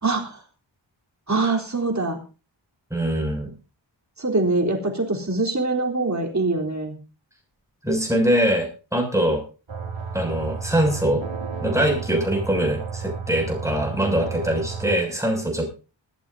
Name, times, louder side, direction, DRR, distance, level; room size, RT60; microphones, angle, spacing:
voice 1, 0.0-0.4 1.3-2.2 4.2-7.0, right 3 dB, 35° right, 1 dB, 3.8 m, -23 dB
voice 2, 2.9-3.5 7.8-9.4 10.1-11.3 11.6-15.7, right 1 dB, 5° right, 0 dB, 7.0 m, -23 dB
sound 1, 9.7-15.0, right 5 dB, 80° right, 2.9 m, -32 dB
20.0 x 14.0 x 2.8 m, 0.35 s
wide cardioid pair, 95°, 46 cm